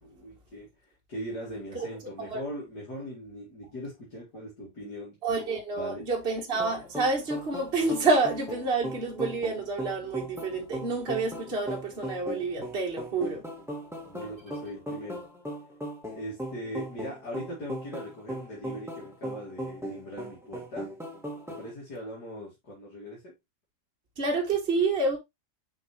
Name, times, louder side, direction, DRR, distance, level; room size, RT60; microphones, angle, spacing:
voice 1, 0.0-0.7 1.1-5.2 5.8-6.1 14.0-15.3 16.1-20.9 21.5-23.3, equal, 80° left, 3.1 m, -40 dB
voice 2, 5.2-13.4 24.2-25.2, right 3 dB, 40° right, 1.7 m, -28 dB
sound 1, 6.6-21.7, equal, ahead, 1.8 m, -38 dB
6.5 x 5.3 x 3.1 m
omnidirectional pair, 1.7 m